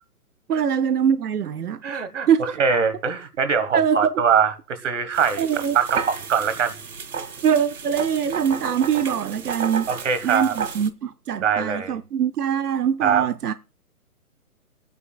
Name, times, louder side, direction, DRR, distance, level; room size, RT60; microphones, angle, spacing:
voice 1, 0.5-2.4 3.7-4.1 5.4-5.8 7.4-9.9 10.2-13.5, right 8 dB, 90° right, 0.8 m, -23 dB
voice 2, 1.8-5.4 5.7-6.7 9.9-10.5 11.4-12.0 13.0-13.3, right 6 dB, 55° right, 1.6 m, -22 dB
sound 1, 5.1-10.9, right 6 dB, 75° right, 1.8 m, -32 dB
27.5 x 9.6 x 2.3 m
hypercardioid pair, 160°, 45 cm